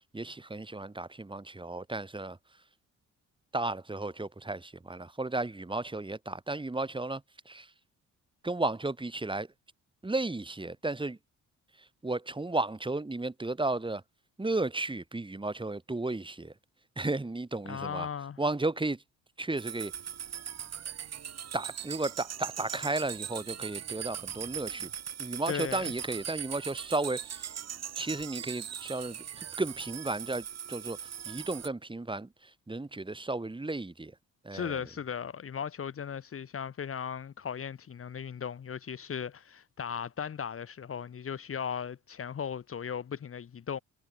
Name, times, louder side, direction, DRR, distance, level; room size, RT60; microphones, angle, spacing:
voice 1, 0.1-2.4 3.5-7.7 8.4-9.5 10.0-11.2 12.0-14.0 14.4-16.5 17.0-18.1 18.4-19.0 19.4-19.9 21.5-24.9 25.2-27.5 27.9-31.0 31.2-34.1 34.4-34.8, right 2 dB, 15° right, 6.0 m, -34 dB
voice 2, 17.7-18.4 25.5-25.9 34.5-43.8, left 7 dB, 45° left, 2.5 m, -37 dB
sound 1, 19.6-31.7, right 9 dB, 60° right, 4.1 m, -40 dB
cardioid pair, 90°, 30 cm